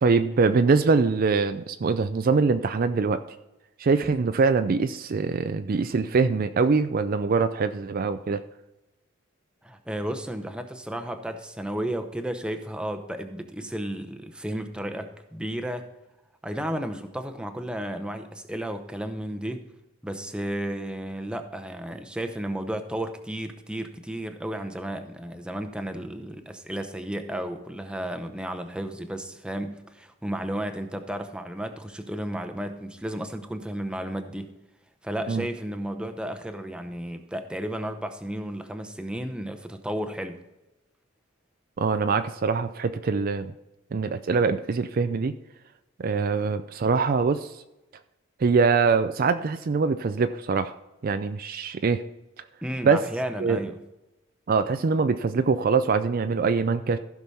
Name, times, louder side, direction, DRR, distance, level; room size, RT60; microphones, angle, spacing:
voice 1, 0.0-3.2 3.8-8.4 35.3-35.5 41.8-43.5 43.9-45.3 46.0-47.5 48.4-50.7 51.0-52.0 52.8-53.0 53.4-53.6 54.5-57.0, right 4 dB, 45° right, 10 dB, 0.4 m, -23 dB
voice 2, 9.6-15.9 16.4-19.6 20.0-34.5 35.0-40.4 52.6-53.8, right 1 dB, 5° right, 6 dB, 0.7 m, -33 dB
15.0 x 6.1 x 4.2 m, 0.98 s
head